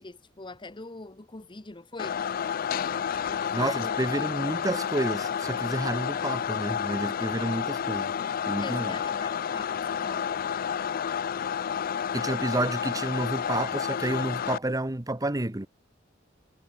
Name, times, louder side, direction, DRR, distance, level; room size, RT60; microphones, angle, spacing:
voice 1, 0.0-2.2 3.1-4.0 8.5-10.3, left 3 dB, 25° left, 1.0 m, -42 dB
sound 1, 2.0-14.6, left 8 dB, 50° left, 0.4 m, -30 dB
voice 2, 3.5-8.1 8.5-9.0 12.1-15.7, right 1 dB, 20° right, 1.1 m, -30 dB
head